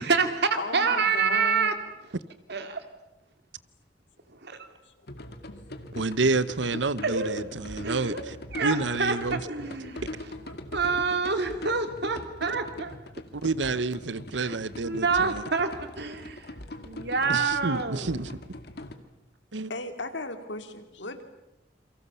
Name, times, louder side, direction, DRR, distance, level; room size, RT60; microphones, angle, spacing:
voice 1, 0.0-1.7 2.5-2.8 4.3-4.6 7.0-7.3 7.8-8.2 8.5-10.0 10.7-13.0 14.3-14.5 14.8-15.7 16.0-16.5 16.8-18.2, right 4 dB, 65° right, 7 dB, 2.9 m, -27 dB
voice 2, 0.6-1.7 4.8-5.1 5.5-5.6 9.8-9.9 19.7-21.2, left 2 dB, 90° left, 8 dB, 2.6 m, -36 dB
sound 1, 5.1-18.9, left 1 dB, 60° left, 2.1 m, -41 dB
voice 3, 5.9-9.4 13.3-15.4 17.3-18.3 19.5-19.7, right 3 dB, 85° right, 17 dB, 1.0 m, -29 dB
29.0 x 24.0 x 7.0 m, 0.93 s
head